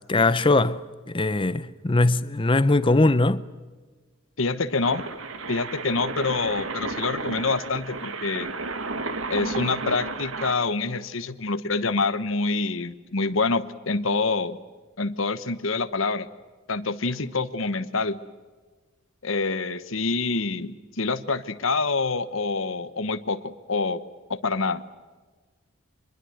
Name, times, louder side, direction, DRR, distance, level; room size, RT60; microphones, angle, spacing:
voice 1, 0.0-3.5, left 2 dB, 25° left, 0.7 m, -21 dB
voice 2, 4.4-5.1 5.5-8.5 9.3-14.6 15.0-16.3 16.7-18.2 19.2-24.0 24.3-24.8, left 3 dB, 70° left, 1.2 m, -26 dB
sound 1, 4.8-10.5, right 3 dB, 80° right, 1.8 m, -32 dB
26.0 x 21.5 x 7.9 m
head